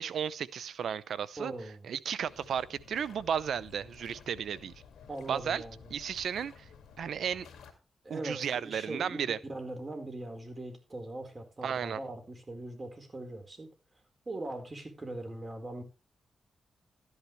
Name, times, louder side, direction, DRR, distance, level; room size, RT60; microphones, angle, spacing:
voice 1, 0.0-1.5 1.8-4.7 5.3-5.6 5.9-6.7 7.0-7.5 8.1-9.4 11.6-12.0, right 8 dB, 75° right, 0.7 m, -34 dB
voice 2, 1.4-1.9 5.1-5.8 8.0-13.7 14.3-15.8, right 2 dB, 35° right, 4.4 m, -41 dB
sound 1, 2.2-7.7, left 6 dB, 85° left, 2.1 m, -54 dB
13.0 x 11.0 x 3.3 m
supercardioid pair, 55°, 0 cm